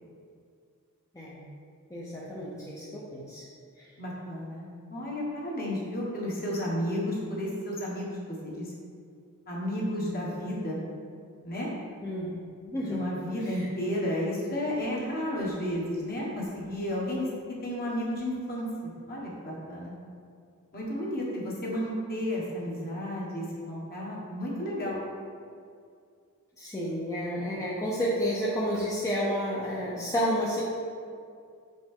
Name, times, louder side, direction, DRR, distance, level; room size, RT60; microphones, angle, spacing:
voice 1, 1.9-3.4 12.0-12.3 12.6-13.1 13.5-13.6 26.6-30.6, equal, 15° left, -7 dB, 0.7 m, -30 dB
voice 2, 4.0-8.7 9.5-10.8 11.4-11.7 12.9-17.3 17.6-19.9 20.7-25.0, equal, 45° left, -4 dB, 1.4 m, -32 dB
6.1 x 5.1 x 3.7 m, 2.3 s
head